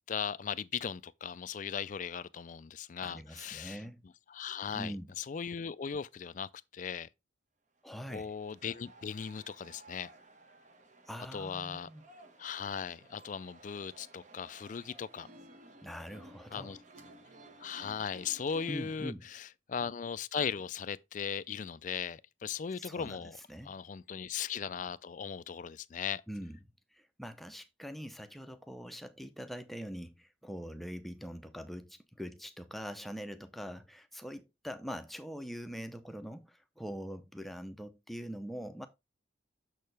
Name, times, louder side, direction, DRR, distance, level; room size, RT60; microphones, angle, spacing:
voice 1, 0.1-3.8 4.3-7.1 8.1-10.1 11.3-11.9 12.4-15.3 16.5-16.8 17.6-26.2, left 7 dB, 40° left, 0.3 m, -38 dB
voice 2, 2.9-4.0 4.7-5.1 7.8-8.3 11.1-12.0 15.8-16.8 18.7-19.2 22.8-23.8 26.3-26.6 26.9-38.9, equal, ahead, 0.6 m, -43 dB
sound 1, 7.9-19.0, right 2 dB, 40° right, 1.0 m, -56 dB
6.6 x 6.5 x 3.3 m
head